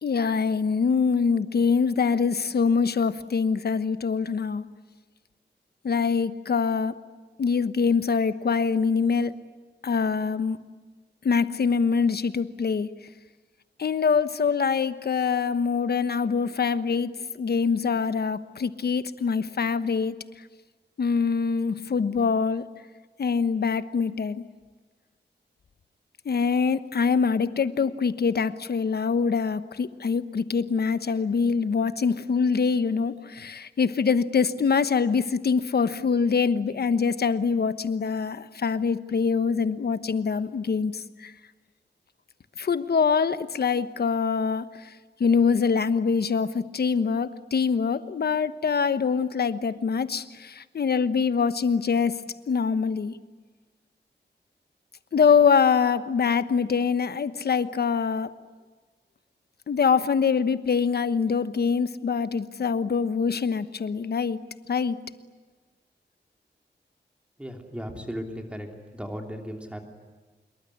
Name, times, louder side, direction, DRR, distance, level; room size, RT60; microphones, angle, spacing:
voice 1, 0.0-4.6 5.8-7.0 7.4-9.3 9.8-10.6 11.2-12.9 13.8-20.2 21.0-22.7 23.2-24.4 26.2-41.3 42.6-44.9 45.2-52.2 52.5-53.2 55.1-58.3 59.7-64.4 64.7-65.0, left 5 dB, 60° left, 12 dB, 1.1 m, -24 dB
voice 2, 67.4-69.8, equal, 5° right, 3 dB, 3.2 m, -36 dB
26.5 x 22.5 x 9.9 m, 1.4 s
wide cardioid pair, 180°, 18 cm